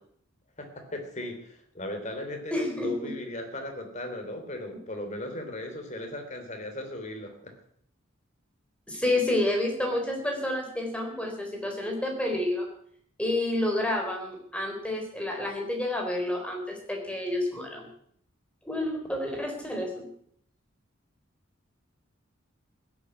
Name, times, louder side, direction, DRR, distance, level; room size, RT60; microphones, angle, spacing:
voice 1, 0.6-7.5, left 1 dB, 35° left, 4 dB, 3.3 m, -37 dB
voice 2, 2.5-3.1 8.9-12.7 13.2-17.9 18.6-20.0, left 1 dB, 5° left, 1 dB, 3.9 m, -29 dB
16.0 x 8.6 x 9.8 m, 0.67 s
head